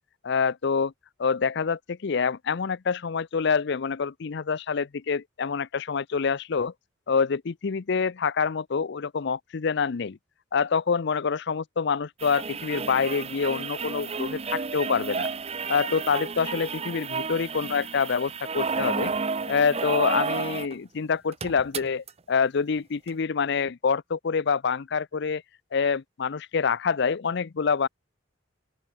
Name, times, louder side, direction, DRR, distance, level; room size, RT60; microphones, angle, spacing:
voice 1, 0.2-0.9 1.2-6.7 7.1-10.2 10.5-15.3 15.7-19.1 19.5-25.4 25.7-27.9, left 5 dB, 60° left, 0.5 m, -26 dB
sound 1, 12.2-20.7 21.0-21.1 21.3-22.1 23.1-23.2, right 5 dB, 35° right, 0.8 m, -31 dB
open air
head